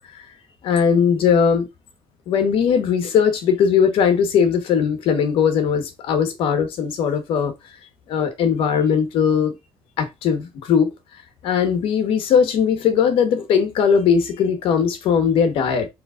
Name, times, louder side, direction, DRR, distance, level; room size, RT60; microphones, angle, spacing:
voice 1, 0.6-1.7 2.3-7.5 8.1-9.5 10.0-10.9 11.4-15.9, left 7 dB, 70° left, 1.2 m, -19 dB
3.9 x 3.2 x 3.7 m
cardioid pair, 120°, 10 cm